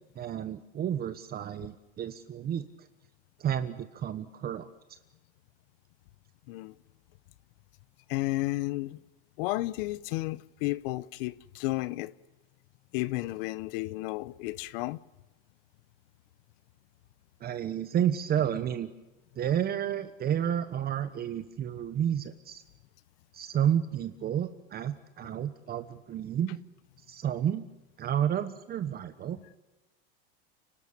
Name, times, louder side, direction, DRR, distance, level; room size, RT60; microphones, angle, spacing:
voice 1, 0.1-2.7 3.4-4.7 17.4-18.9 19.3-22.6 23.3-26.6 27.1-27.7 28.0-29.4, right 9 dB, 30° right, 1.2 m, -31 dB
voice 2, 8.1-9.0 9.4-12.1 12.9-15.0, left 19 dB, 65° left, 1.0 m, -32 dB
30.0 x 12.5 x 8.7 m
supercardioid pair, 130°, 30 cm